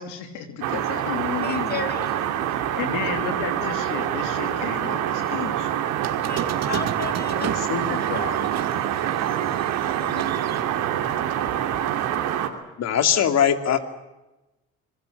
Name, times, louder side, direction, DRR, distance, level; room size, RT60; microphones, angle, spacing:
voice 1, 0.0-2.1 2.7-5.8 7.4-8.5, left 7 dB, 85° left, 6 dB, 3.0 m, -32 dB
sound 1, 0.6-12.5, right 11 dB, 80° right, 2.9 m, -26 dB
voice 2, 1.4-2.1 6.3-7.5 10.0-10.3, left 5 dB, 30° left, 8 dB, 2.3 m, -33 dB
Squeak, 6.0-11.3, right 9 dB, 55° right, 2.1 m, -34 dB
voice 3, 12.8-13.8, left 8 dB, 55° left, 7 dB, 2.7 m, -20 dB
26.5 x 21.5 x 8.0 m, 1.0 s
supercardioid pair, 75°, 31 cm